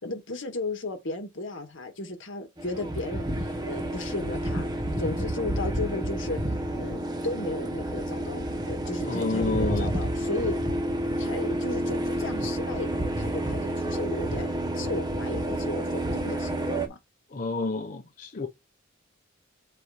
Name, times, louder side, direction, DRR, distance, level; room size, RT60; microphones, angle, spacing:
voice 1, 0.0-4.7 5.0-6.4 6.7-10.6 11.2-17.0, left 2 dB, 65° left, 1.7 m, -34 dB
sound 1, 2.6-16.9, right 1 dB, 20° right, 1.0 m, -30 dB
voice 2, 9.0-9.9 17.3-18.5, left 3 dB, 40° left, 0.7 m, -29 dB
7.7 x 2.7 x 4.9 m
head